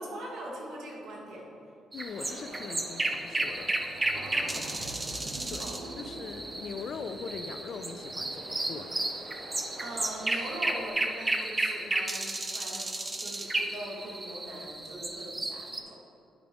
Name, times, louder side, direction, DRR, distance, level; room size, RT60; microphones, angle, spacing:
voice 1, 0.0-1.5 4.1-4.8 5.6-5.7 9.8-12.9 13.2-16.0, right 1 dB, 70° right, -3 dB, 1.7 m, -41 dB
voice 2, 1.9-4.1 4.5-4.9 5.5-5.7 6.0-9.0, left 5 dB, 60° left, 9 dB, 0.5 m, -41 dB
sound 1, 1.9-15.8, right 2 dB, 20° right, 0.6 m, -33 dB
sound 2, 2.0-10.9, right 1 dB, 50° right, 1.7 m, -47 dB
sound 3, 3.5-3.6 3.8-7.6, right 2 dB, 90° right, 1.2 m, -45 dB
10.5 x 4.9 x 3.6 m, 2.7 s
cardioid pair, 90°, 0 cm